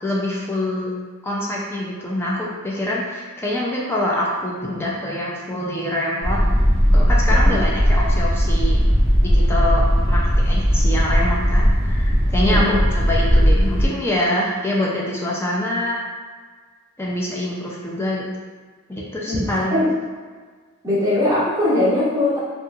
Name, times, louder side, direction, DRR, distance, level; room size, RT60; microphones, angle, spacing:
voice 1, 0.0-0.9 1.2-6.4 6.9-8.8 9.2-16.0 17.0-18.2 18.9-19.8, left 1 dB, 10° left, -5 dB, 0.3 m, -25 dB
sound 1, 6.2-13.9, equal, 55° left, 0.8 m, -17 dB
voice 2, 7.3-7.6 12.4-12.8 19.3-19.4 19.7-19.9 20.8-22.4, left 1 dB, 15° right, -9 dB, 0.8 m, -20 dB
2.8 x 2.5 x 2.3 m, 1.5 s
head